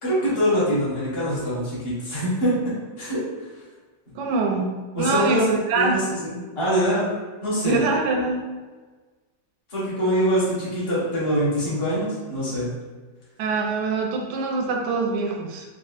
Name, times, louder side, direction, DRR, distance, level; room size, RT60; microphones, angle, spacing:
voice 1, 0.0-2.5 3.0-3.2 4.9-5.4 5.7-7.0 7.4-7.8 9.7-12.7, equal, 20° left, -9 dB, 0.8 m, -24 dB
voice 2, 4.2-4.7 5.0-6.0 7.6-8.5 13.4-15.6, right 3 dB, 75° right, 1 dB, 1.1 m, -24 dB
3.6 x 2.6 x 2.4 m, 1.3 s
omnidirectional pair, 2.0 m